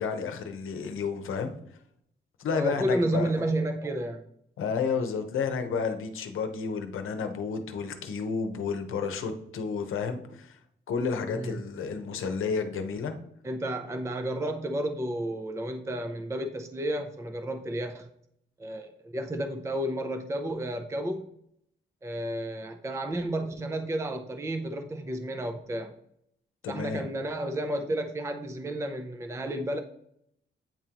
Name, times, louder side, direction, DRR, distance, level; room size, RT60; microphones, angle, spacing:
voice 1, 0.0-1.5 2.4-3.4 4.6-10.6 10.9-13.1 26.6-27.0, left 5 dB, 85° left, 7 dB, 0.8 m, -31 dB
voice 2, 2.5-4.2 11.3-11.6 13.4-18.1 18.6-21.3 22.0-25.9 26.7-29.8, right 1 dB, 15° right, 7 dB, 0.5 m, -31 dB
8.8 x 3.7 x 2.9 m, 0.72 s
cardioid pair, 95°, 20 cm